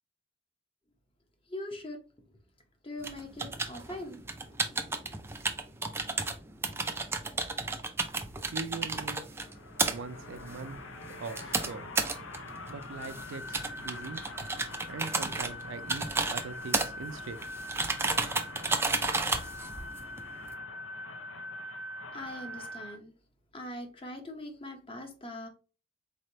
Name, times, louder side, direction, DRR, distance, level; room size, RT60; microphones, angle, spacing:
voice 1, 1.5-2.0 2.8-4.2 5.0-5.1 22.1-23.1 23.5-25.5, left 1 dB, 25° left, 0.8 m, -41 dB
sound 1, 3.0-20.5, right 3 dB, 10° right, 0.4 m, -33 dB
voice 2, 8.5-9.3 9.9-10.8 11.2-11.9 12.7-14.2 14.9-17.4, right 4 dB, 75° right, 0.4 m, -41 dB
sound 2, 9.3-23.0, left 2 dB, 80° left, 0.7 m, -43 dB
4.3 x 3.2 x 2.7 m
head